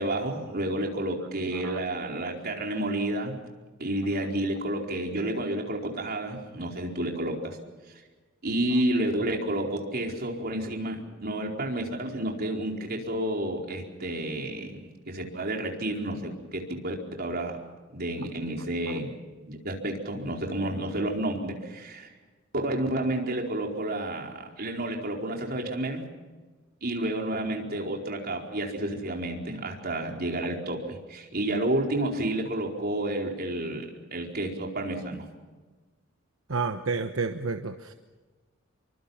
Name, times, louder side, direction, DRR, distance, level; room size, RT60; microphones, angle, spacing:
voice 1, 0.0-3.4 3.8-7.6 8.4-17.6 17.9-19.1 19.5-22.1 22.6-26.0 26.8-35.2, right 1 dB, 50° right, 1 dB, 4.6 m, -30 dB
voice 2, 36.5-37.9, right 4 dB, 75° right, 7 dB, 1.2 m, -30 dB
27.5 x 24.0 x 5.9 m, 1.3 s
head